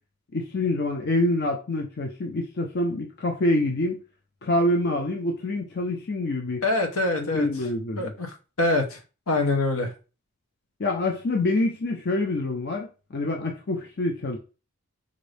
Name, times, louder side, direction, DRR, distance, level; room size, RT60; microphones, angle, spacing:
voice 1, 0.3-4.0 4.4-6.6 7.2-8.1 10.8-14.4, left 1 dB, 50° left, 2 dB, 0.6 m, -26 dB
voice 2, 6.6-7.7 8.0-9.0 9.3-9.9, left 2 dB, 75° left, 4 dB, 1.0 m, -25 dB
5.2 x 2.6 x 3.3 m, 0.33 s
head